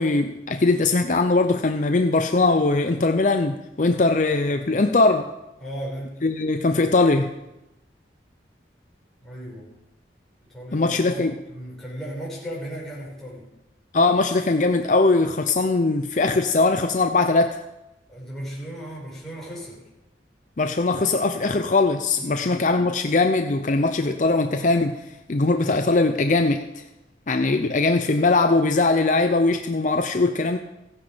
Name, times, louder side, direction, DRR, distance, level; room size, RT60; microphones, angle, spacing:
voice 1, 0.0-5.3 6.2-7.3 10.7-11.3 13.9-17.6 20.6-25.0 25.3-26.8 27.3-30.6, left 3 dB, 45° left, 7 dB, 0.6 m, -21 dB
voice 2, 5.6-6.2 9.2-9.7 10.4-13.5 18.1-19.8 22.2-22.7, equal, ahead, -6 dB, 5.6 m, -36 dB
16.0 x 9.9 x 5.1 m, 0.94 s
head